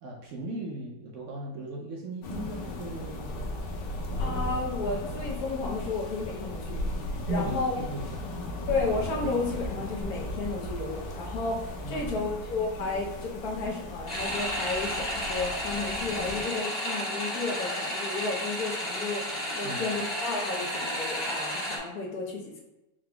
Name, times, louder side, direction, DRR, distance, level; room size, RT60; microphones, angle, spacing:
voice 1, 0.0-3.3 7.3-8.3 11.8-12.4 19.6-19.8, right 1 dB, 75° right, -1 dB, 0.7 m, -37 dB
sound 1, 2.2-16.4, left 1 dB, 90° left, 1.4 m, -36 dB
voice 2, 4.2-6.8 7.3-7.7 8.7-22.6, left 3 dB, 65° left, -1 dB, 1.2 m, -32 dB
sound 2, 14.1-21.8, equal, 45° left, 1.5 m, -32 dB
4.9 x 3.8 x 2.2 m, 0.98 s
omnidirectional pair, 1.9 m